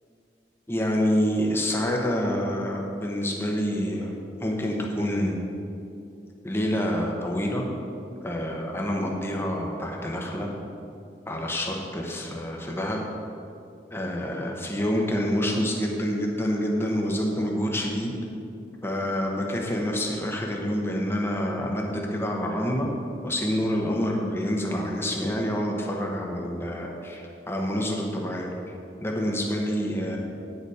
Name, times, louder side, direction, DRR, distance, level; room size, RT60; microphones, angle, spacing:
voice 1, 0.7-4.1 4.4-5.4 6.4-7.6 8.2-10.5 11.3-13.0 13.9-18.2 18.8-22.9 23.2-28.5 29.0-30.2, equal, 15° left, 0 dB, 1.2 m, -27 dB
9.8 x 7.0 x 5.0 m, 2.6 s
head